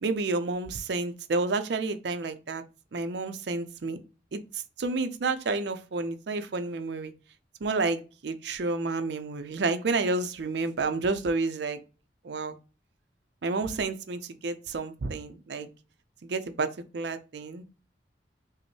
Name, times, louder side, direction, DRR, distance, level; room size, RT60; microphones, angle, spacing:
voice 1, 0.0-2.6 2.9-4.0 4.3-7.1 7.6-11.8 12.2-12.6 13.4-15.7 16.2-17.6, right 3 dB, 65° right, 0.5 m, -30 dB
5.1 x 2.0 x 3.1 m
head